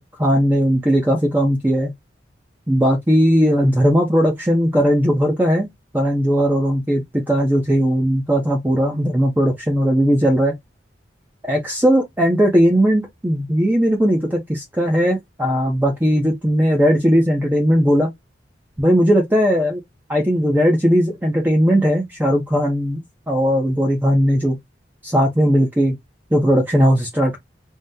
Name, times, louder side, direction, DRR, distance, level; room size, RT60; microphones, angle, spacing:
voice 1, 0.0-1.9 2.7-5.7 5.9-7.0 7.3-10.5 11.4-18.1 18.8-19.8 20.1-23.0 23.3-24.6 25.0-26.0 26.3-27.4, equal, 10° right, 0.5 m, -17 dB
2.7 x 2.0 x 3.5 m
head